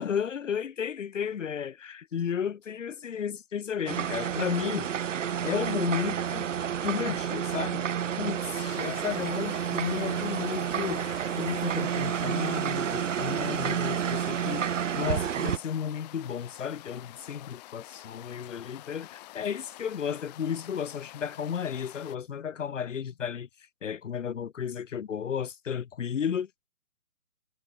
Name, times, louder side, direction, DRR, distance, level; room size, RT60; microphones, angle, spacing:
voice 1, 0.0-4.9 5.4-6.5 6.8-7.9 8.2-14.7 15.0-23.5 23.8-26.7, left 8 dB, 55° left, 1.4 m, -33 dB
sound 1, 3.9-15.6, right 8 dB, 55° right, 0.7 m, -30 dB
sound 2, 8.5-22.2, left 19 dB, 30° left, 6.1 m, -48 dB
figure-of-eight pair, 145°, 45 cm